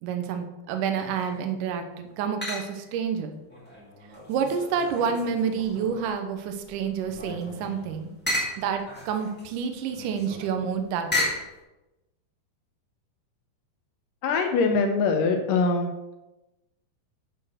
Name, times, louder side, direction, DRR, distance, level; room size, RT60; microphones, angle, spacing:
voice 1, 0.0-3.4 4.3-8.1 8.6-11.3, right 6 dB, 70° right, 6 dB, 2.2 m, -29 dB
sound 1, 0.9-1.5 2.4-3.0 3.5-6.2 6.6-11.5, left 1 dB, 5° left, 0.7 m, -34 dB
voice 2, 14.2-15.9, left 4 dB, 75° left, 4 dB, 2.2 m, -23 dB
11.0 x 4.5 x 6.1 m, 1.0 s
omnidirectional pair, 4.3 m